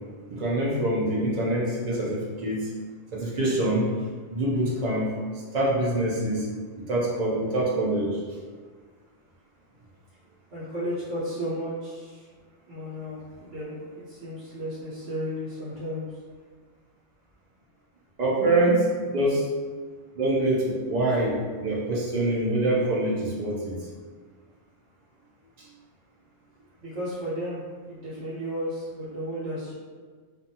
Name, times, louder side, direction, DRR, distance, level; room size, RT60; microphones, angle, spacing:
voice 1, 0.3-2.7 3.1-3.9 4.3-5.1 5.5-6.5 6.9-8.2 18.2-18.9 19.1-19.5 20.1-23.8 25.6-25.7, right 1 dB, 50° right, -5 dB, 0.5 m, -25 dB
voice 2, 10.5-12.3 12.7-16.0 26.8-27.6 27.9-29.7, equal, 75° right, -12 dB, 1.1 m, -33 dB
2.5 x 2.3 x 2.7 m, 1.5 s
omnidirectional pair, 1.3 m